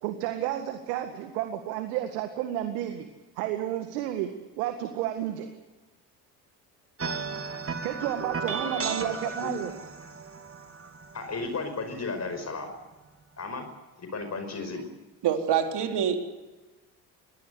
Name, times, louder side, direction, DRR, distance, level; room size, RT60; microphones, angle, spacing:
voice 1, 0.0-3.1 3.4-5.5 7.8-9.7, right 12 dB, 80° right, 7 dB, 2.0 m, -31 dB
sound 1, 7.0-12.4, right 5 dB, 30° right, 2.9 m, -35 dB
voice 2, 8.4-9.5 11.1-12.7 13.4-13.7 14.0-14.9, left 3 dB, 35° left, 7 dB, 5.3 m, -35 dB
voice 3, 15.2-16.2, right 8 dB, 60° right, 4 dB, 3.7 m, -25 dB
23.0 x 17.5 x 8.2 m, 1.2 s
hypercardioid pair, 65°, 47 cm